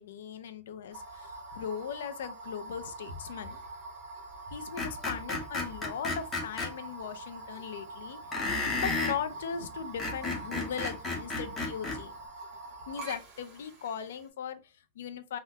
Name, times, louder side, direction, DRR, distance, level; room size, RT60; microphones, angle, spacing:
voice 1, 0.0-3.6 4.5-12.1 12.9-15.4, left 7 dB, 85° left, 0.4 m, -39 dB
sound 1, 0.9-14.3, right 2 dB, 35° right, 0.9 m, -45 dB
Screech, 4.8-6.7 8.3-9.2 9.8-12.0, left 3 dB, 15° left, 0.7 m, -32 dB
3.5 x 2.1 x 2.7 m
supercardioid pair, 175°, 0 cm